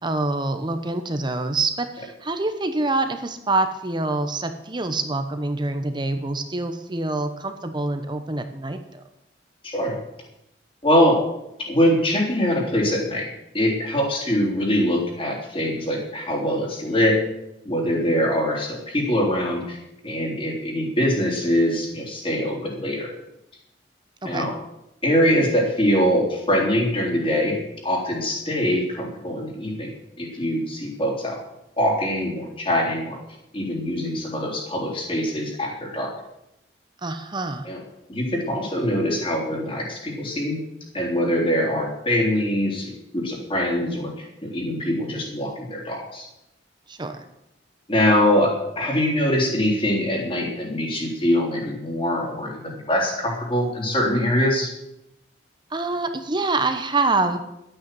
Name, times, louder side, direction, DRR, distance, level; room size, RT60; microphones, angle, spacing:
voice 1, 0.0-9.0 24.2-24.5 37.0-37.7 46.9-47.2 55.7-57.4, right 2 dB, 25° right, 8 dB, 1.0 m, -26 dB
voice 2, 9.6-10.0 10.8-11.2 11.7-13.3 13.5-17.2 17.7-19.8 20.0-23.1 24.2-24.5 25.0-31.4 31.8-33.2 33.5-36.1 37.6-37.8 38.1-40.6 40.9-46.3 47.9-54.7, equal, 30° left, -1 dB, 3.6 m, -23 dB
12.5 x 9.0 x 7.7 m, 0.85 s
head